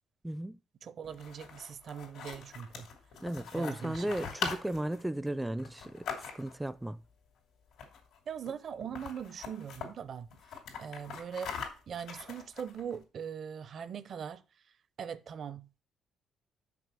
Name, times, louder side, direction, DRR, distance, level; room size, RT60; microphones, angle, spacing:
voice 1, 0.2-0.6 3.2-6.1 6.3-7.0, right 1 dB, 10° right, 0.4 m, -35 dB
voice 2, 0.8-2.9 3.5-4.1 8.3-10.3 10.8-11.6 11.9-14.4 15.0-15.8, right 7 dB, 60° right, 0.6 m, -41 dB
sound 1, 1.0-6.7 7.7-8.2 8.5-8.6 8.8-9.9 10.3-13.0, left 6 dB, 85° left, 2.8 m, -42 dB
6.1 x 5.5 x 6.9 m
cardioid pair, 90°, 0 cm